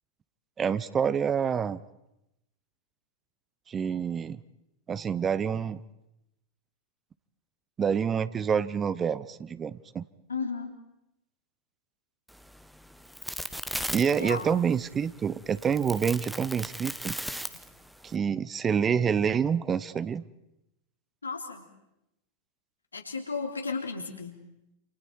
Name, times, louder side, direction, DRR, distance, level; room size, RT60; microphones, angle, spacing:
voice 1, 0.6-1.8 3.7-4.4 4.9-5.8 7.8-10.0 13.9-17.2 18.0-20.3, right 7 dB, 20° right, 17 dB, 0.8 m, -27 dB
voice 2, 10.3-10.7 14.0-14.5 21.2-21.7 22.9-24.4, left 4 dB, 75° left, 3 dB, 3.2 m, -34 dB
sound 1, 12.3-18.2, equal, ahead, 1.1 m, -38 dB
29.0 x 28.5 x 4.7 m, 0.88 s
figure-of-eight pair, 90°, 0 cm